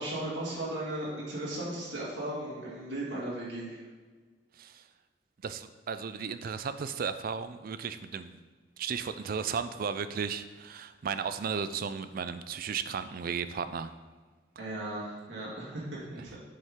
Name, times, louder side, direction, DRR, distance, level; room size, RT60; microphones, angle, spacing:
voice 1, 0.0-3.8 14.6-16.4, right 1 dB, 90° right, -6 dB, 2.1 m, -36 dB
voice 2, 5.4-8.4 8.8-13.9, right 6 dB, 55° right, 12 dB, 0.4 m, -35 dB
7.6 x 5.4 x 3.7 m, 1.4 s
head